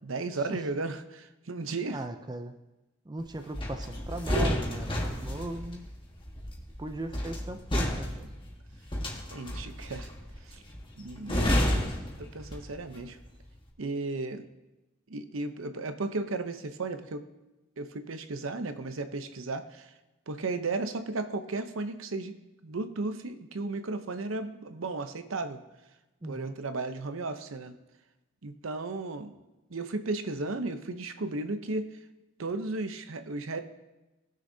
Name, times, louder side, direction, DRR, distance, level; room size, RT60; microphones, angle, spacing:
voice 1, 0.0-2.0 9.3-10.1 10.4-10.6 10.9-11.9 12.2-13.2 13.8-14.5 15.1-17.3 17.8-19.9 20.3-22.4 22.6-25.6 26.2-27.8 28.4-29.3 29.7-32.0 32.4-33.6, right 3 dB, 85° right, 9 dB, 0.8 m, -35 dB
voice 2, 1.9-2.6 3.1-5.9 6.8-8.3 26.2-26.6, right 2 dB, 20° right, 7 dB, 0.5 m, -38 dB
sound 1, 3.5-12.9 13.2-13.5, left 1 dB, 25° left, 1.4 m, -31 dB
18.5 x 6.5 x 2.7 m, 1.0 s
head